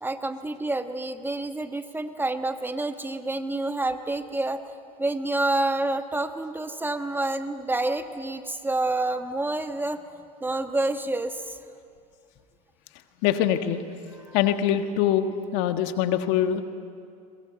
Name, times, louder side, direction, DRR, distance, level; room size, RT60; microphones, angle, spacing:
voice 1, 0.0-4.6 5.0-10.0 10.4-11.6 14.2-14.4, right 2 dB, 10° right, 8 dB, 1.3 m, -28 dB
voice 2, 13.2-13.8 14.3-15.3 15.5-16.6, left 10 dB, 60° left, 8 dB, 1.6 m, -23 dB
22.0 x 21.5 x 8.1 m, 2.4 s
hypercardioid pair, 90°, 20 cm